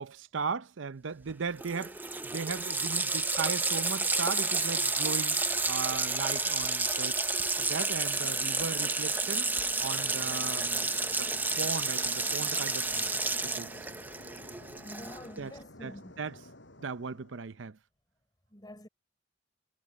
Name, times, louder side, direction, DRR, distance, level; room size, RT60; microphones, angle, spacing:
voice 1, 0.0-5.4 5.7-7.2 7.6-9.5 9.8-10.9 11.2-11.3 11.6-13.1 13.4-13.7 15.4-15.5 15.8-16.4 16.8-17.8, right 5 dB, 80° right, 0.6 m, -37 dB
Water tap faucet, 1.3-1.4 1.6-15.4, right 3 dB, 10° right, 0.6 m, -31 dB
sound 1, 9.8-17.7, left 1 dB, 70° left, 7.5 m, -52 dB
voice 2, 14.8-16.2 18.5-18.9, left 1 dB, 20° left, 5.4 m, -47 dB
head